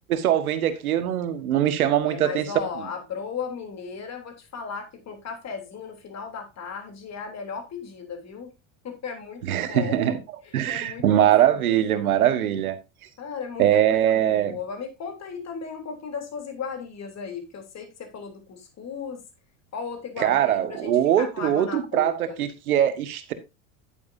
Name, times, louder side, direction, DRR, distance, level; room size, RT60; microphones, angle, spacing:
voice 1, 0.1-2.5 9.4-10.2 10.5-12.8 13.6-14.6 20.2-23.3, right 11 dB, 90° right, 1.5 m, -22 dB
voice 2, 2.0-8.5 8.8-10.2 10.4-11.8 13.2-14.0 14.3-19.2 19.7-22.4, left 6 dB, 40° left, 3.3 m, -36 dB
10.5 x 8.8 x 2.7 m
hypercardioid pair, 90°, 42 cm